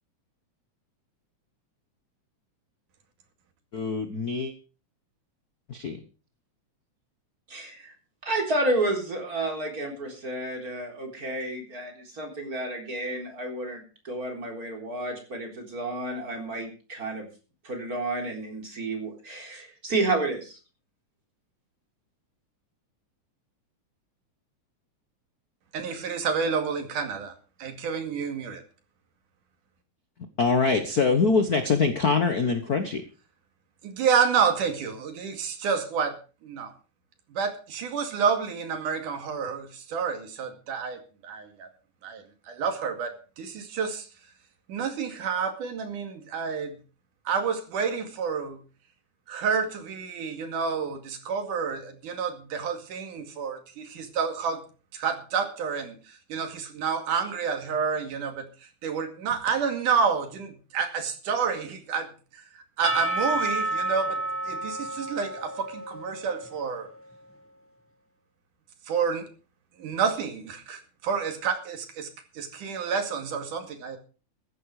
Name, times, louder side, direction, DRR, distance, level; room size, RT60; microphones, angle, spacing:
voice 1, 3.7-4.5 5.7-6.0 30.4-33.0, left 4 dB, 65° left, 8 dB, 0.9 m, -24 dB
voice 2, 7.5-7.9 8.2-17.3 17.6-20.6, right 2 dB, 30° right, 2 dB, 4.2 m, -31 dB
voice 3, 25.7-27.3 27.6-28.6 33.8-36.1 36.4-36.7 37.3-41.7 42.0-44.1 44.7-46.7 47.3-48.6 49.3-54.6 54.9-56.0 56.3-58.5 58.8-62.1 62.8-64.2 64.5-66.9 68.9-69.3 69.8-72.1 72.4-74.0, right 6 dB, 85° right, 6 dB, 3.7 m, -29 dB
Percussion / Church bell, 62.8-66.8, right 2 dB, 15° left, 0.5 m, -30 dB
15.0 x 11.5 x 4.9 m, 0.36 s
omnidirectional pair, 3.5 m